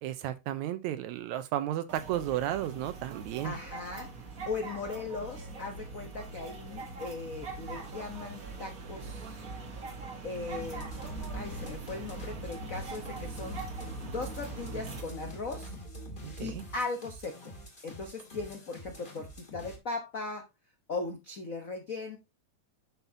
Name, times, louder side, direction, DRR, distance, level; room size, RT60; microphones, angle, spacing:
voice 1, 0.0-3.5 16.2-16.6, right 12 dB, 85° right, 2.1 m, -33 dB
sound 1, 1.9-15.0, right 3 dB, 40° right, 1.4 m, -42 dB
voice 2, 3.4-4.1 4.5-9.4 10.2-13.6 14.1-15.7 16.4-17.5 17.8-20.5 20.9-22.2, left 3 dB, 75° left, 0.7 m, -38 dB
sound 2, 10.5-19.8, right 1 dB, 20° left, 1.6 m, -45 dB
9.2 x 5.8 x 2.8 m
omnidirectional pair, 3.3 m